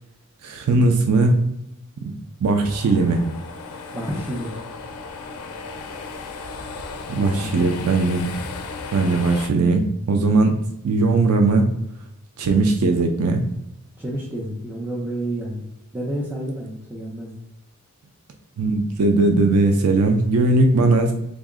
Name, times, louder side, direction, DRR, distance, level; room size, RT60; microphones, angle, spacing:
voice 1, 0.4-1.4 2.0-2.1 2.4-3.2 7.1-8.3 8.9-10.5 10.8-11.7 12.4-13.4 18.6-21.1, right 3 dB, 80° right, 4 dB, 0.4 m, -19 dB
sound 1, 2.6-9.5, left 4 dB, 85° left, 0.4 m, -35 dB
voice 2, 3.9-4.5 7.2-7.7 14.0-15.6 15.9-17.3, right 1 dB, 10° right, -6 dB, 0.4 m, -29 dB
3.6 x 2.1 x 3.5 m, 0.81 s
head